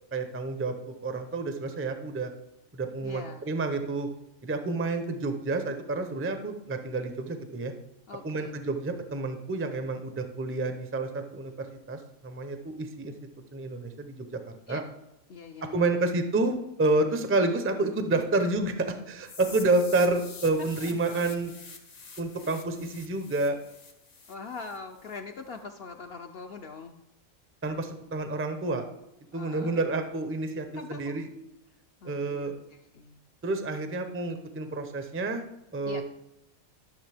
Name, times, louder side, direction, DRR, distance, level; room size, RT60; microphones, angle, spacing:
voice 1, 0.1-0.7 1.0-2.3 2.7-4.1 4.4-7.7 8.2-11.5 11.9-13.1 13.5-14.4 14.7-14.8 15.7-21.5 22.2-23.6 27.6-28.9 29.3-31.3 32.0-32.5 33.4-35.4 35.7-36.0, right 2 dB, 15° right, 7 dB, 0.4 m, -29 dB
voice 2, 3.0-3.6 8.1-8.5 14.7-14.8 15.3-15.8 20.8-21.0 22.4-22.6 24.3-27.0 29.3-29.8 30.7-31.2 32.0-33.2 35.8-36.0, left 4 dB, 60° left, 4 dB, 0.7 m, -42 dB
sound 1, 19.2-25.2, left 4 dB, 80° left, 1.8 m, -47 dB
11.5 x 6.3 x 3.4 m, 0.90 s
omnidirectional pair, 1.4 m